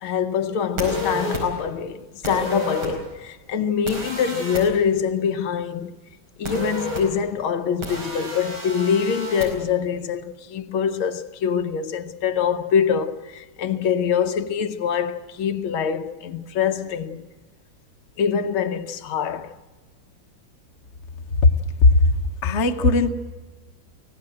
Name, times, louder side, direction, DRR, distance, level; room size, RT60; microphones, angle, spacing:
voice 1, 0.0-5.9 6.4-17.3 18.2-19.6, left 7 dB, 85° left, 1.8 m, -24 dB
sound 1, 0.8-1.4 2.2-2.9 3.9-4.6 6.4-7.0 7.8-9.5, equal, 85° right, 5.6 m, -30 dB
voice 2, 21.8-22.1 22.4-23.1, left 3 dB, 40° left, 1.2 m, -16 dB
24.0 x 17.0 x 7.8 m
omnidirectional pair, 2.2 m